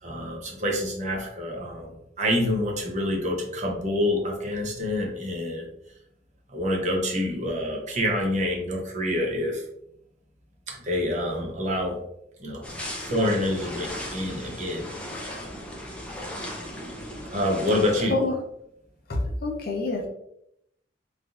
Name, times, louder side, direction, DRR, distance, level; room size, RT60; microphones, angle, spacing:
voice 1, 0.0-5.7 6.5-9.6 10.7-12.0 12.4-12.6 13.0-14.9 17.3-18.2, left 1 dB, 40° right, 0 dB, 0.7 m, -27 dB
sound 1, 12.6-18.0, equal, 5° left, 0.5 m, -36 dB
voice 2, 19.1-20.1, left 2 dB, 55° left, 1 dB, 0.6 m, -26 dB
3.3 x 2.6 x 2.4 m, 0.76 s
head